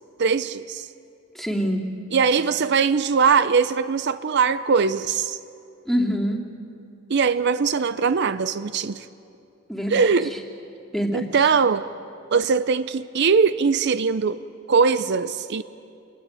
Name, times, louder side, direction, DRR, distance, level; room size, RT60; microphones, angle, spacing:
voice 1, 0.2-0.9 2.1-5.4 7.1-9.1 9.9-10.3 11.1-11.9 12.3-14.4 14.7-15.6, right 5 dB, 55° right, 0.5 m, -21 dB
voice 2, 1.3-1.9 5.9-6.4 9.7-10.4 10.9-11.5, equal, ahead, 2.7 m, -26 dB
28.5 x 22.5 x 8.9 m
head